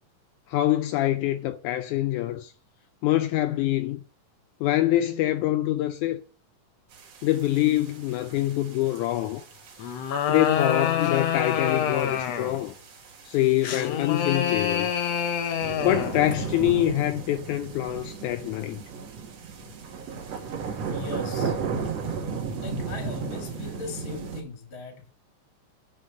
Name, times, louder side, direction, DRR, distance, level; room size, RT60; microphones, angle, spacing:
voice 1, 0.5-2.5 3.0-4.0 4.6-6.2 7.2-9.4 10.3-12.7 13.3-14.9 15.8-18.8, left 14 dB, 85° left, 1.7 m, -25 dB
sound 1, 6.9-24.4, right 5 dB, 55° right, 2.4 m, -36 dB
sound 2, 9.8-12.6 13.6-16.2, left 8 dB, 70° left, 1.7 m, -26 dB
voice 2, 20.9-21.6 22.6-25.1, left 3 dB, 40° left, 2.6 m, -38 dB
8.5 x 5.3 x 7.4 m
omnidirectional pair, 4.0 m